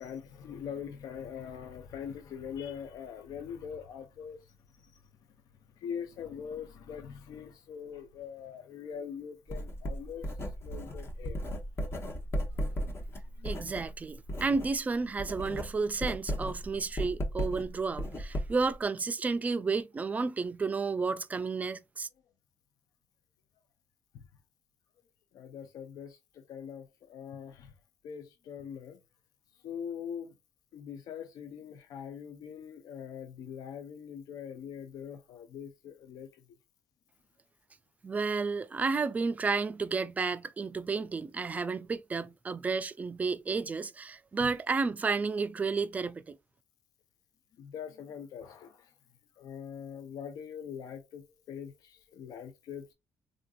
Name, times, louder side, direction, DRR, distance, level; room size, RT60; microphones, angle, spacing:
voice 1, 0.0-4.5 4.8-5.0 5.8-11.4 13.4-13.5 24.1-24.2 25.3-27.7 28.0-29.0 29.6-30.3 30.7-36.4 47.6-48.9 49.4-52.9, left 8 dB, 75° left, 0.5 m, -43 dB
Writing, 9.5-14.8 15.0-18.8, equal, 40° left, 0.8 m, -36 dB
voice 2, 13.4-22.1 38.0-46.4, right 4 dB, 25° right, 0.3 m, -32 dB
3.6 x 2.5 x 2.3 m
cardioid pair, 110°, 7 cm